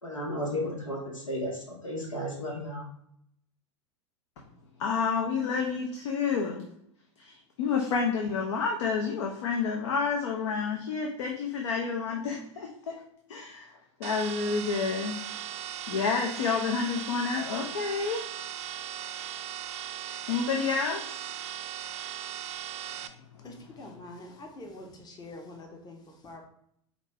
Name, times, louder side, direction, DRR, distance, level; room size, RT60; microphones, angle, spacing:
voice 1, 0.0-2.9, equal, 90° left, -1 dB, 1.4 m, -34 dB
voice 2, 4.8-6.7 7.2-13.0 13.3-13.7 14.0-15.2 15.9-18.2 20.3-21.2, left 5 dB, 70° left, 1 dB, 0.7 m, -29 dB
sound 1, 14.0-23.1, right 11 dB, 40° right, 0.4 m, -38 dB
voice 3, 23.4-26.5, left 2 dB, 25° left, 2 dB, 0.8 m, -45 dB
5.2 x 2.6 x 3.2 m, 0.71 s
hypercardioid pair, 90°, 16 cm